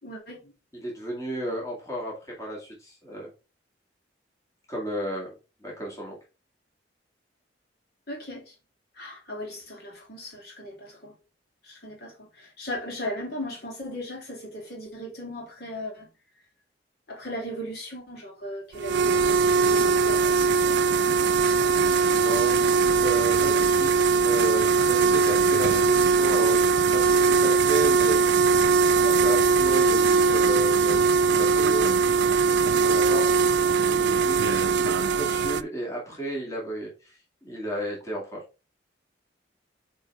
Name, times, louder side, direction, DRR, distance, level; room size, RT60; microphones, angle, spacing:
voice 1, 0.0-0.5 8.1-8.5 8.9-11.1 11.6-16.1 17.1-21.3 22.0-22.4 22.8-22.9 23.4-23.6 24.1-24.3, left 1 dB, 55° left, 2.8 m, -38 dB
voice 2, 0.7-3.3 4.7-5.3 5.6-6.2 22.1-22.6 23.0-26.6 26.9-28.2 29.0-31.9 32.7-33.5 33.8-38.4, right 1 dB, 15° left, 2.2 m, -33 dB
sound 1, 18.8-35.6, right 4 dB, 70° right, 0.4 m, -21 dB
8.1 x 3.9 x 3.4 m
head